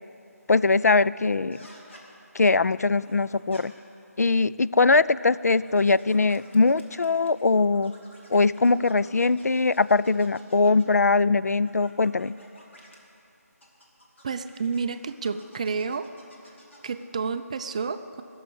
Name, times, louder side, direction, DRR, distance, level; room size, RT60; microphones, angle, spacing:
voice 1, 0.5-1.6 2.3-3.7 4.2-7.9 8.3-12.3, left 3 dB, 75° left, 17 dB, 0.3 m, -21 dB
sound 1, 1.5-2.0 3.0-3.6 4.6-7.4 7.7-11.0 11.6-13.0 13.6-17.1, equal, 50° left, 2.4 m, -53 dB
voice 2, 14.2-16.1 16.8-18.2, right 5 dB, 25° right, 10 dB, 0.4 m, -30 dB
16.5 x 7.1 x 9.8 m, 2.8 s
figure-of-eight pair, 155°, 9 cm